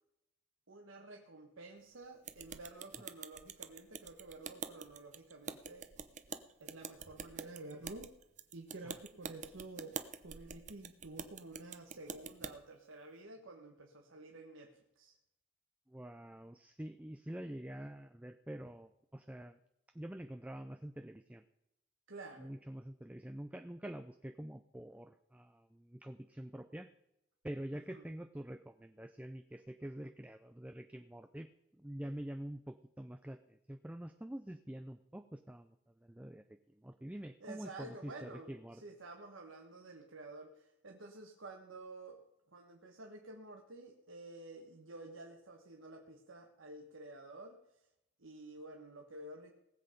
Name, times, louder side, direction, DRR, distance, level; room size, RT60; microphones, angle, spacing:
voice 1, 0.7-5.9 6.6-8.1 8.5-10.0 10.2-15.1 22.1-22.5 27.7-28.1 37.4-42.2 42.5-47.6 48.2-49.5, right 2 dB, 80° right, 2 dB, 1.4 m, -51 dB
sound 1, 2.3-12.5, right 6 dB, 35° right, 0.7 m, -46 dB
voice 2, 15.9-19.6 19.9-21.4 22.4-26.9 27.4-31.5 31.7-36.4 36.7-38.8, right 1 dB, 5° right, 8 dB, 0.4 m, -46 dB
19.0 x 7.9 x 5.2 m, 0.85 s
head